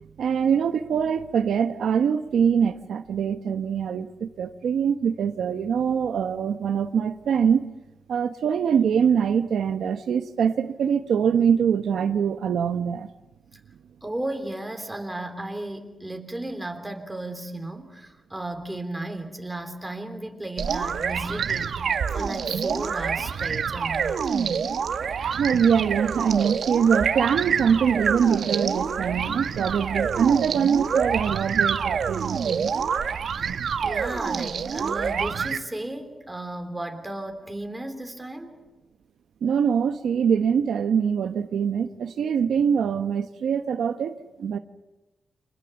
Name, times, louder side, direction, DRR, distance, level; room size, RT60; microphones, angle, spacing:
voice 1, 0.2-7.7 8.1-13.1 25.2-32.7 39.4-44.6, right 7 dB, 85° right, 1.0 m, -23 dB
voice 2, 14.0-24.3 33.8-38.6, right 1 dB, 10° right, 3.4 m, -34 dB
sound 1, 20.6-35.6, right 6 dB, 65° right, 1.3 m, -27 dB
29.5 x 26.5 x 7.1 m
wide cardioid pair, 135°, 0 cm